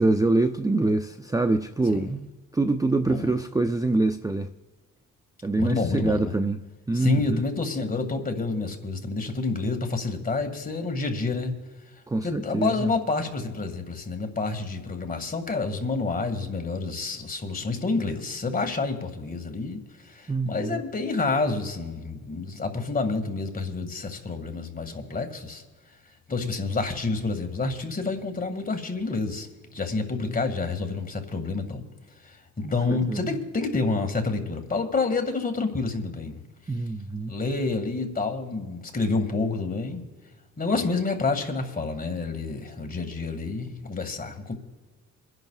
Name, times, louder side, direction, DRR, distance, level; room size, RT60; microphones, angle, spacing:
voice 1, 0.0-2.3 2.5-4.5 5.4-7.4 12.1-12.9 20.3-20.8 32.6-33.4 36.7-37.3, right 2 dB, 10° right, 0.5 m, -25 dB
voice 2, 5.6-6.3 6.9-11.5 12.2-19.8 20.1-25.6 26.3-29.5 29.7-31.8 32.6-36.4 37.3-40.0 40.6-44.5, left 3 dB, 30° left, 2.0 m, -28 dB
29.0 x 11.0 x 2.4 m
cardioid pair, 90°, 30 cm